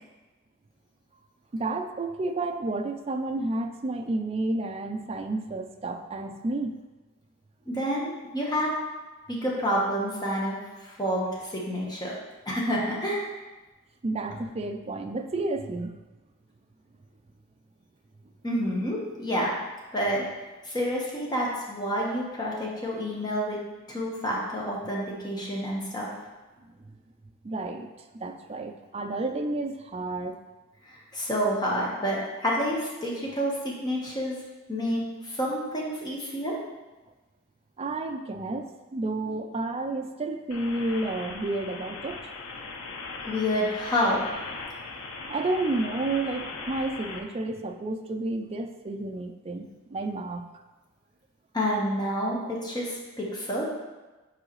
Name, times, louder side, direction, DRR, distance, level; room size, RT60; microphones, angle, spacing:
voice 1, 1.5-6.8 14.0-15.9 27.4-30.4 37.8-42.2 45.3-50.4, right 2 dB, 30° right, 5 dB, 0.4 m, -31 dB
voice 2, 7.7-8.7 9.3-10.6 10.8-12.2 12.5-13.2 18.4-19.5 19.9-20.2 20.6-23.6 23.9-26.1 31.1-34.4 34.7-36.6 43.2-44.2 51.5-53.6, equal, 20° left, -4 dB, 1.2 m, -28 dB
sound 1, 40.5-47.2, left 3 dB, 80° left, 0.7 m, -39 dB
7.5 x 4.7 x 3.1 m, 1.2 s
head